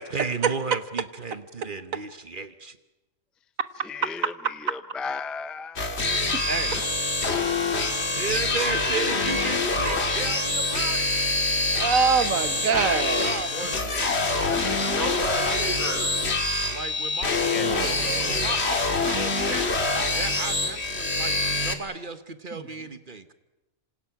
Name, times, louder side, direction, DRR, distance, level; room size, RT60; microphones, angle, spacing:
voice 1, 0.0-2.8 6.5-6.8 8.2-11.1 13.2-14.6 15.0-15.5 16.7-19.7 20.2-23.3, right 4 dB, 40° right, 11 dB, 1.2 m, -34 dB
voice 2, 3.8-6.2 6.8-6.9 12.7-12.9 13.9-14.2 17.2-18.0 18.3-18.6, left 5 dB, ahead, 13 dB, 0.4 m, -36 dB
sound 1, 5.8-21.7, left 2 dB, 50° left, 2.3 m, -25 dB
voice 3, 11.7-13.3 17.5-18.5 22.5-22.6, right 5 dB, 75° right, 12 dB, 1.6 m, -25 dB
voice 4, 14.4-16.2, left 1 dB, 90° left, 2 dB, 6.1 m, -33 dB
26.5 x 26.5 x 6.0 m, 1.0 s
omnidirectional pair, 1.4 m